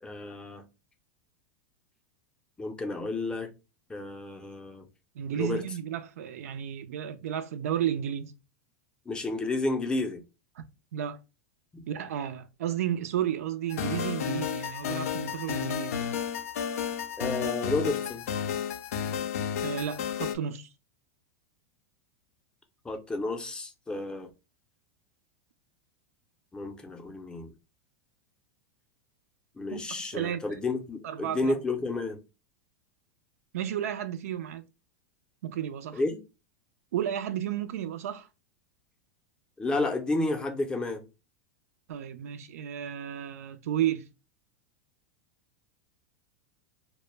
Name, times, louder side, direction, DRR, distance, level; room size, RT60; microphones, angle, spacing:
voice 1, 0.0-0.6 2.6-3.5 3.9-4.9 5.3-5.6 9.1-10.2 11.7-11.8 17.2-18.3 22.8-24.3 26.5-27.5 29.6-32.2 35.9-36.2 39.6-41.0, left 2 dB, 10° left, 0.5 m, -31 dB
voice 2, 5.2-8.3 10.6-10.7 10.9-11.2 11.9-16.0 19.6-20.7 29.7-29.8 30.1-30.6 31.0-31.5 33.5-34.6 35.4-36.0 36.9-38.3 41.9-44.1, right 10 dB, 85° right, 0.3 m, -32 dB
sound 1, 13.7-20.4, left 8 dB, 85° left, 0.4 m, -32 dB
2.1 x 2.1 x 3.1 m
supercardioid pair, 130°, 8 cm